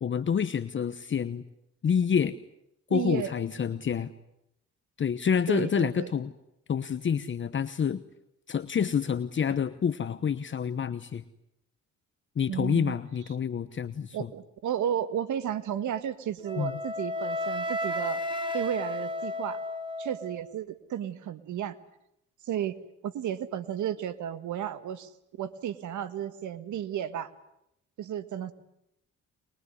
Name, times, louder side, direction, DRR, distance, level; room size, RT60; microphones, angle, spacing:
voice 1, 0.0-1.4 1.8-2.4 2.9-4.1 5.0-6.3 6.7-8.0 8.5-11.2 12.4-14.3 16.6-16.7, left 7 dB, 40° left, 12 dB, 1.0 m, -28 dB
voice 2, 2.9-3.3 5.5-6.1 12.5-13.0 14.1-18.2 18.5-19.6 20.0-21.8 22.4-22.8 23.0-25.1 25.4-27.3 28.0-28.5, right 10 dB, 75° right, 12 dB, 1.8 m, -33 dB
Wind instrument woodwind instrument, 16.5-20.5, left 1 dB, 15° right, 2.5 m, -33 dB
23.5 x 22.0 x 9.8 m, 0.81 s
cardioid pair, 90°, 30 cm